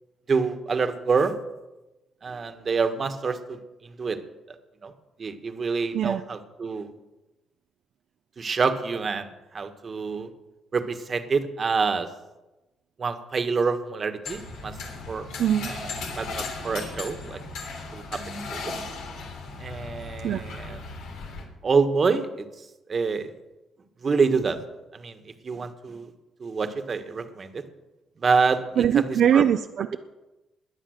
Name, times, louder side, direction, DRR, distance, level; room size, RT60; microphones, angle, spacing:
voice 1, 0.3-1.3 2.2-3.6 4.0-4.2 4.8-4.9 5.2-6.9 8.4-9.2 9.5-10.3 10.7-12.1 13.0-14.7 15.1-15.2 15.6-15.9 16.2-17.4 17.9-18.2 18.5-18.7 19.6-20.8 21.6-22.3 22.9-23.3 24.0-24.6 24.9-25.2 25.4-26.1 26.4-27.6 28.2-29.0 29.3-29.4, right 5 dB, 40° right, 8 dB, 1.5 m, -26 dB
sound 1, 14.2-21.4, left 3 dB, 90° left, 2.9 m, -36 dB
voice 2, 15.4-15.7 20.2-20.4 28.8-30.0, right 9 dB, 70° right, 8 dB, 0.5 m, -22 dB
21.0 x 7.4 x 6.5 m, 1.0 s
cardioid pair, 90°, 0 cm